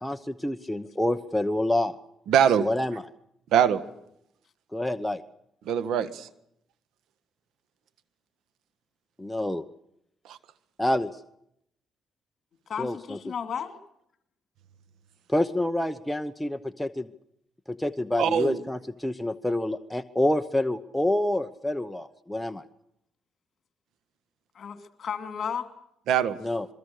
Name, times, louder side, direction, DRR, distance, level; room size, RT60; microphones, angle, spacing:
voice 1, 0.0-1.9 2.6-3.0 4.7-5.2 9.2-9.6 10.8-11.1 12.8-13.2 15.3-17.1 17.7-22.6 26.4-26.7, left 1 dB, 5° left, 8 dB, 1.0 m, -27 dB
voice 2, 2.3-2.7 3.5-3.8 5.7-6.3 10.3-10.4 18.2-18.6 26.1-26.4, right 8 dB, 80° right, 14 dB, 1.5 m, -22 dB
voice 3, 12.7-13.8 24.5-25.7, left 7 dB, 50° left, 8 dB, 3.1 m, -33 dB
26.0 x 23.0 x 6.6 m, 0.77 s
cardioid pair, 90°, 0 cm